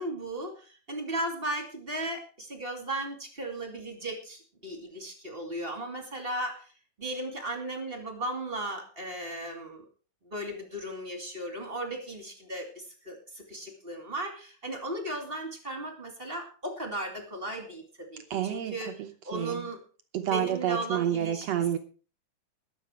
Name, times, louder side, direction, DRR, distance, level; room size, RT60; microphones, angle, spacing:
voice 1, 0.0-6.7 7.0-9.8 10.2-18.9 19.2-19.8 20.2-21.5, right 1 dB, 20° right, 4 dB, 2.2 m, -36 dB
voice 2, 18.3-19.7 20.1-21.8, right 10 dB, 70° right, 7 dB, 1.6 m, -29 dB
20.5 x 7.6 x 4.5 m, 0.38 s
omnidirectional pair, 3.9 m